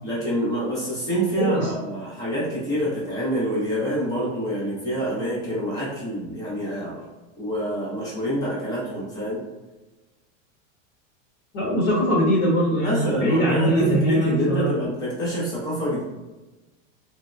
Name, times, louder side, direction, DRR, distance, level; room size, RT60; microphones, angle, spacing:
voice 1, 0.0-7.1 7.4-9.4 12.8-16.0, right 1 dB, 10° left, -6 dB, 0.4 m, -26 dB
voice 2, 1.3-1.7 11.5-14.7, equal, 65° left, -5 dB, 1.0 m, -21 dB
3.0 x 2.0 x 2.4 m, 1.1 s
supercardioid pair, 165°, 39 cm